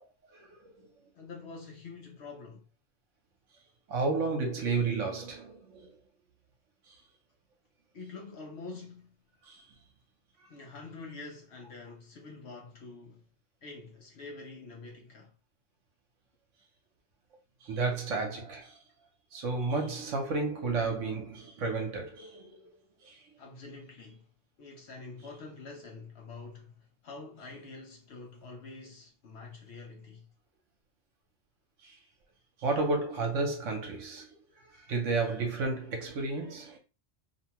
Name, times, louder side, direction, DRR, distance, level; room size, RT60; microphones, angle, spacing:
voice 1, 0.3-0.9 3.9-5.9 9.4-9.6 17.6-18.8 19.3-22.7 23.0-23.2 31.8-32.0 32.6-34.3 34.9-36.8, right 3 dB, 70° right, 1.1 m, -32 dB
voice 2, 1.1-2.7 7.9-9.1 10.5-13.2 13.6-15.4 23.4-24.3 24.6-30.3, left 3 dB, 65° left, 0.8 m, -46 dB
2.7 x 2.2 x 2.8 m
omnidirectional pair, 1.4 m